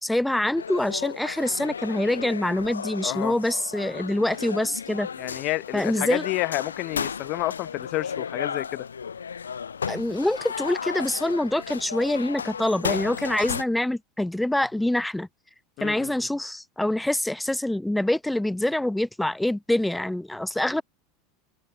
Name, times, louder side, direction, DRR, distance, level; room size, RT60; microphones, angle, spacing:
voice 1, 0.0-5.1 5.7-6.3 9.9-15.3 15.8-20.8, left 1 dB, 5° left, 0.6 m, -25 dB
sound 1, 0.6-13.6, left 6 dB, 80° left, 0.4 m, -34 dB
voice 2, 3.0-3.3 5.2-8.9 15.8-16.1, left 21 dB, 50° left, 0.8 m, -30 dB
figure-of-eight pair, 80°, 0 cm